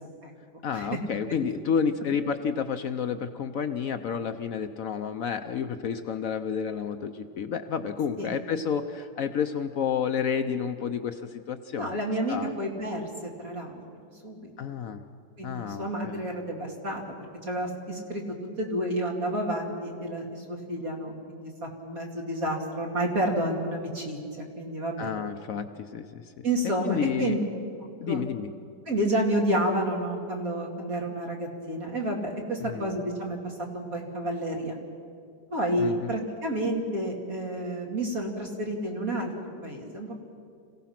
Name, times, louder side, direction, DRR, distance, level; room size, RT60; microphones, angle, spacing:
voice 1, 0.6-11.2 11.5-12.0 12.3-12.5 14.6-15.0 15.4-16.2 25.0-26.2 26.8-27.3 28.0-28.5 32.6-32.9 35.8-36.1, left 7 dB, 60° left, 8 dB, 1.0 m, -30 dB
voice 2, 11.8-14.5 15.4-18.2 18.6-24.2 24.6-25.1 26.4-27.4 28.1-28.2 28.9-34.8 35.5-39.3 39.6-40.2, right 1 dB, 55° right, 0 dB, 3.1 m, -30 dB
27.0 x 16.5 x 5.9 m, 2.3 s
omnidirectional pair, 1.8 m